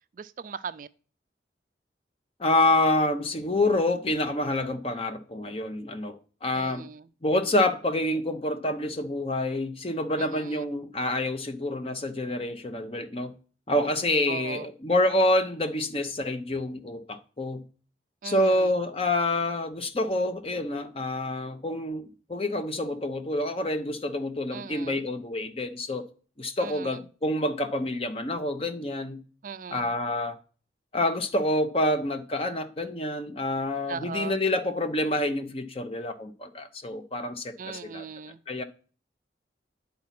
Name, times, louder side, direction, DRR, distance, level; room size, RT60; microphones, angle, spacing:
voice 1, 0.2-0.9 6.5-7.0 10.2-10.6 14.3-14.7 18.2-18.7 24.5-25.0 26.6-27.0 29.4-29.9 33.9-34.4 37.6-38.4, right 6 dB, 50° right, 0.4 m, -39 dB
voice 2, 2.4-6.9 7.2-13.3 13.7-17.6 18.2-26.1 26.4-29.2 29.7-30.4 30.9-38.1 38.5-38.6, left 1 dB, 35° left, 0.8 m, -27 dB
9.6 x 4.1 x 5.8 m
head